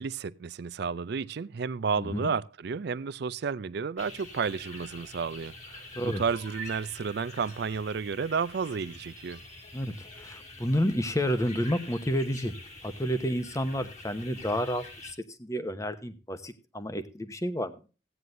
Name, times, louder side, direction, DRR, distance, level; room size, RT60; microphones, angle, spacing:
voice 1, 0.0-9.4, right 5 dB, 55° right, 0.4 m, -32 dB
voice 2, 2.0-2.3 5.9-6.2 9.7-12.5 12.8-17.8, equal, 15° left, 0.9 m, -30 dB
sound 1, 4.0-15.1, left 1 dB, 40° left, 2.1 m, -46 dB
16.0 x 9.4 x 2.6 m
head